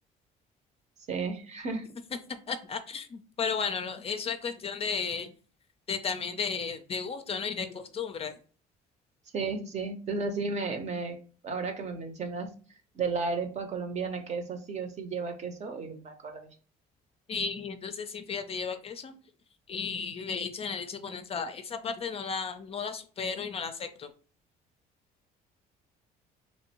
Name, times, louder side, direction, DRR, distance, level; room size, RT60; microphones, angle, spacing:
voice 1, 1.1-1.9 9.3-11.2 11.4-12.5 12.9-16.5, right 4 dB, 40° right, 6 dB, 0.8 m, -33 dB
voice 2, 2.5-5.3 5.9-8.3 17.3-19.2 19.7-24.1, left 5 dB, 35° left, 8 dB, 0.4 m, -34 dB
3.1 x 2.6 x 2.9 m, 0.40 s
cardioid pair, 110°, 17 cm